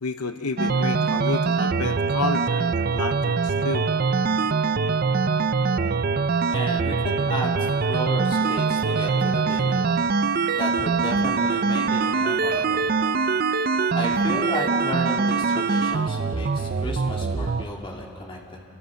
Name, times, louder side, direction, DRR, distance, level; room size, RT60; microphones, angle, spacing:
voice 1, 0.0-3.9, left 3 dB, 85° left, 8 dB, 0.9 m, -30 dB
sound 1, 0.6-17.6, right 4 dB, 40° right, 0.5 m, -23 dB
voice 2, 6.5-9.9 10.5-12.9 13.9-18.6, left 1 dB, 25° left, -1 dB, 2.7 m, -33 dB
28.0 x 24.0 x 6.5 m, 2.9 s
head